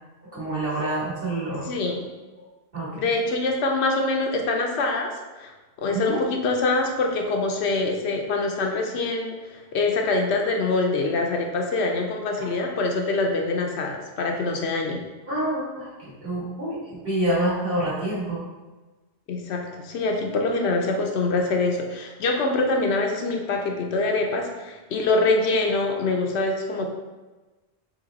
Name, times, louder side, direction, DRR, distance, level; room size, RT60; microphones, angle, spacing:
voice 1, 0.2-1.7 2.4-2.5 2.7-3.1 5.9-6.2 12.4-12.5 15.3-18.4, right 1 dB, 55° right, -8 dB, 1.9 m, -27 dB
voice 2, 1.7-2.1 2.9-5.1 5.4-5.5 5.8-15.0 19.3-26.9, left 3 dB, 75° left, 2 dB, 0.9 m, -24 dB
3.9 x 2.9 x 3.9 m, 1.2 s
omnidirectional pair, 1.1 m